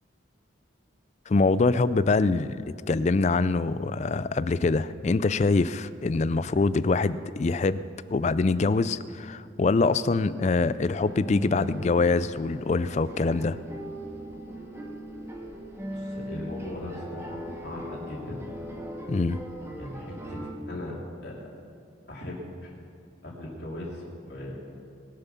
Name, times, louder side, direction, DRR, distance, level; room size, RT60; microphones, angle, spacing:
voice 1, 1.3-7.8 8.1-13.6 19.1-19.4, left 3 dB, 35° left, 16 dB, 0.3 m, -24 dB
sound 1, 11.0-20.5, right 1 dB, 15° right, 1.1 m, -39 dB
voice 2, 15.8-18.4 19.7-20.9 21.2-21.5 22.1-22.7 23.2-24.8, left 1 dB, 55° left, -4 dB, 3.1 m, -39 dB
21.0 x 7.1 x 5.7 m, 2.3 s
head